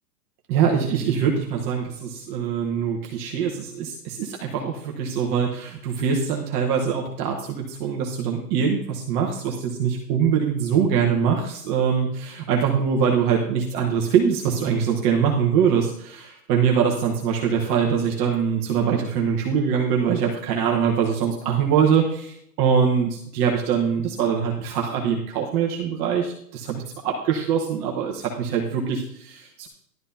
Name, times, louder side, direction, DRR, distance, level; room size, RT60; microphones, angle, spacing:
voice 1, 0.5-29.7, right 7 dB, 20° right, 0 dB, 0.8 m, -23 dB
11.5 x 10.5 x 2.7 m, 0.70 s
hypercardioid pair, 145°, 49 cm